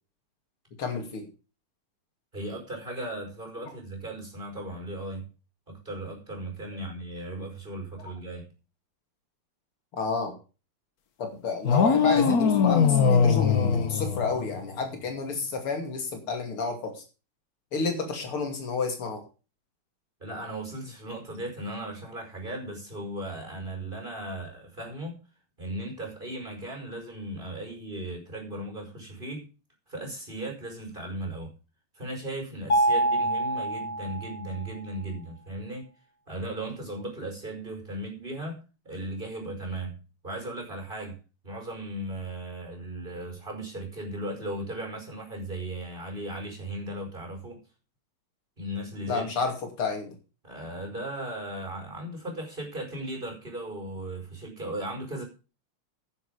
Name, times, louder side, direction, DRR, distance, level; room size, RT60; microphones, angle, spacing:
voice 1, 0.8-1.3 9.9-10.3 11.2-17.0 17.7-19.2 49.1-50.2, left 4 dB, 75° left, 3.5 m, -30 dB
voice 2, 2.3-5.3 5.7-8.5 20.2-25.2 25.6-29.5 29.9-31.5 31.9-35.9 36.3-40.0 40.2-41.2 41.4-47.6 48.6-49.4 50.4-55.2, right 1 dB, 20° right, 5.2 m, -37 dB
sound 1, 11.6-14.8, left 6 dB, 50° left, 1.4 m, -22 dB
Mallet percussion, 32.7-34.7, right 1 dB, 25° left, 2.2 m, -26 dB
10.5 x 10.5 x 5.1 m
omnidirectional pair, 2.4 m